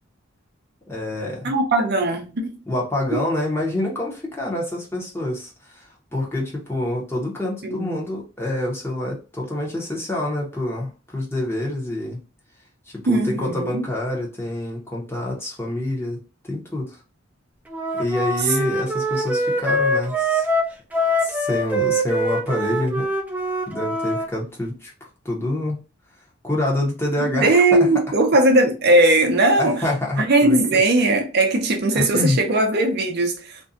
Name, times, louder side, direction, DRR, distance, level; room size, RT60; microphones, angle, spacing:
voice 1, 0.9-1.5 2.7-5.8 6.1-12.2 12.9-16.2 16.5-17.0 18.0-20.5 21.2-23.1 23.7-24.9 25.2-25.8 26.4-27.7 29.6-30.6 31.9-32.4, left 1 dB, 15° left, 0.8 m, -26 dB
voice 2, 1.4-2.5 3.1-3.2 7.6-8.0 13.1-13.9 27.3-29.8 30.2-33.6, right 2 dB, 55° right, 0.5 m, -19 dB
Wind instrument woodwind instrument, 17.7-24.3, equal, 10° right, 0.4 m, -23 dB
2.6 x 2.2 x 2.5 m
head